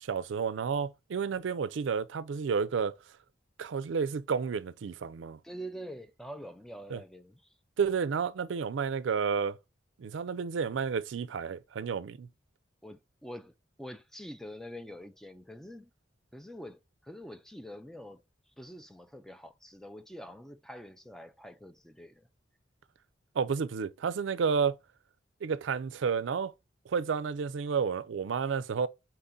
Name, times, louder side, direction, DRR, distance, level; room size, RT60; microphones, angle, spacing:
voice 1, 0.0-3.0 3.6-5.4 6.9-7.0 7.8-9.6 10.0-12.3 23.4-24.8 25.4-26.5 26.9-28.9, right 6 dB, 80° right, 0.4 m, -31 dB
voice 2, 5.4-7.5 12.8-13.5 13.8-15.9 16.3-22.3, equal, ahead, 0.3 m, -46 dB
4.4 x 3.6 x 2.6 m
head